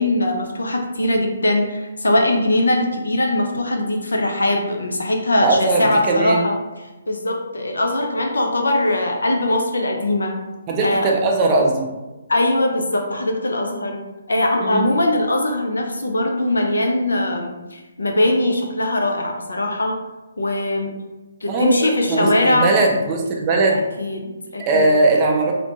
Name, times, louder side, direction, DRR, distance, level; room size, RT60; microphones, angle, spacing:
voice 1, 0.0-6.6 7.1-10.3 10.8-11.1 12.3-14.0 14.3-20.0 20.4-20.9 21.4-22.7 23.7-24.9, left 1 dB, 75° left, 2 dB, 0.5 m, -21 dB
voice 2, 5.4-6.5 10.7-11.9 14.6-14.9 21.5-23.8 24.6-25.5, right 2 dB, 25° right, 0 dB, 0.5 m, -19 dB
2.7 x 2.1 x 2.8 m, 1.1 s
figure-of-eight pair, 140°, 0 cm